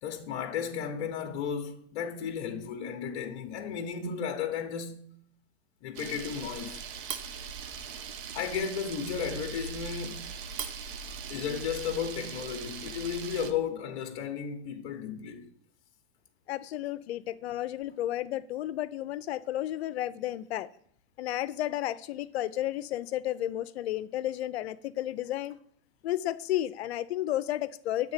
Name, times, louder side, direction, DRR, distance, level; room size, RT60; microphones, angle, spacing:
voice 1, 0.0-5.0 5.8-6.8 8.3-10.3 11.3-15.5, left 7 dB, 45° left, 0.9 m, -34 dB
Camera, 6.0-13.5, right 6 dB, 50° right, 0.8 m, -40 dB
voice 2, 16.5-20.7 21.2-25.6 26.0-28.1, left 13 dB, 70° left, 0.6 m, -32 dB
7.8 x 3.5 x 6.6 m
hypercardioid pair, 140°, 33 cm